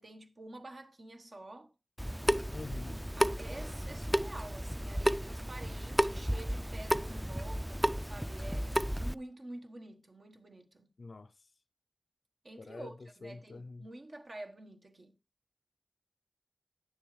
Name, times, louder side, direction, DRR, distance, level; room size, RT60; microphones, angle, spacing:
voice 1, 0.0-1.7 3.1-10.9 12.4-15.1, right 1 dB, 60° right, 1.2 m, -49 dB
Water tap faucet / Sink (filling or washing) / Drip, 2.0-9.1, equal, 10° right, 0.3 m, -33 dB
voice 2, 2.5-3.0 11.0-11.3 12.6-12.9 13.2-13.9, left 3 dB, 75° left, 0.4 m, -45 dB
9.4 x 7.1 x 3.1 m
cardioid pair, 45°, 0 cm